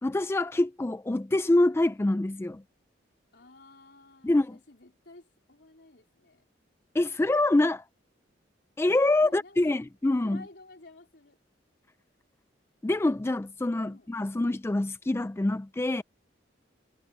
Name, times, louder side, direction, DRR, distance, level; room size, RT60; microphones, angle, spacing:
voice 1, 0.0-2.6 4.2-4.6 6.9-7.9 8.8-10.4 12.8-16.0, left 2 dB, 15° left, 0.3 m, -25 dB
voice 2, 3.3-6.4 9.2-9.8 10.2-11.4 13.8-14.1, left 2 dB, 65° left, 4.3 m, -52 dB
head